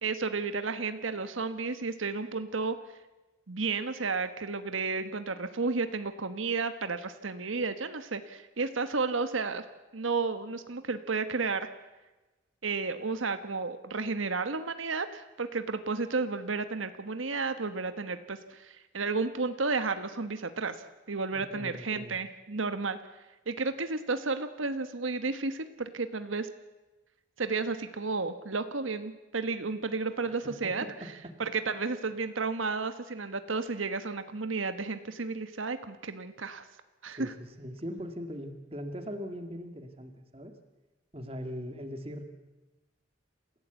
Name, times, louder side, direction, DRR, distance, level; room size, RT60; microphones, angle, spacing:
voice 1, 0.0-2.8 3.5-9.6 9.9-11.7 12.6-23.0 23.5-26.5 27.4-30.8 31.4-36.6 37.0-37.3, right 4 dB, 90° right, 10 dB, 1.3 m, -32 dB
voice 2, 21.3-22.2 30.1-31.4 37.1-40.5 41.1-42.3, equal, 30° right, 7 dB, 2.0 m, -41 dB
28.0 x 15.5 x 8.2 m, 1.1 s
head